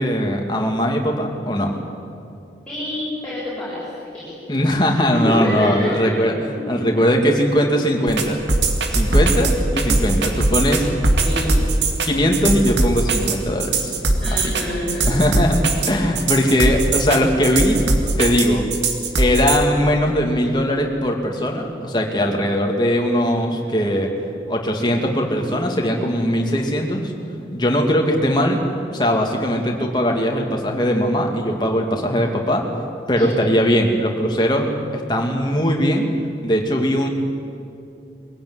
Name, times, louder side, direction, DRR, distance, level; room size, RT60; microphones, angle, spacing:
voice 1, 0.0-1.7 4.5-6.3 6.7-8.4 8.9-10.9 12.0-13.9 15.1-15.6 15.9-17.8 18.2-18.7 19.2-24.1 24.5-27.1 27.5-28.6 28.9-32.6 33.1-36.0 36.4-37.1, equal, 25° left, 1 dB, 2.4 m, -20 dB
voice 2, 2.6-3.8 4.1-4.4 5.1-6.2 6.5-6.8 11.2-11.6 14.2-15.2 15.9-16.0 23.6-23.8 33.1-33.3, left 1 dB, 5° left, -11 dB, 6.8 m, -27 dB
sound 1, 8.1-19.6, right 2 dB, 90° right, 2.4 m, -20 dB
22.5 x 16.5 x 9.6 m, 2.5 s
head